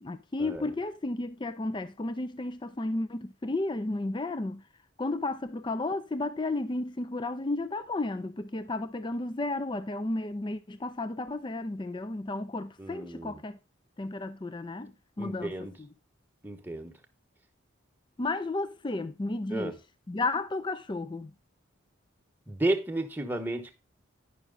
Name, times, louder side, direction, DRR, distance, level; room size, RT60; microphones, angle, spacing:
voice 1, 0.0-4.6 5.0-13.6 14.0-14.9 15.2-15.9 18.2-19.7 20.1-21.3, left 2 dB, 20° left, 0.4 m, -33 dB
voice 2, 12.8-13.4 15.2-15.7 16.4-16.9 19.5-19.7 22.5-23.7, right 2 dB, 10° right, 1.1 m, -32 dB
10.0 x 6.1 x 3.8 m
head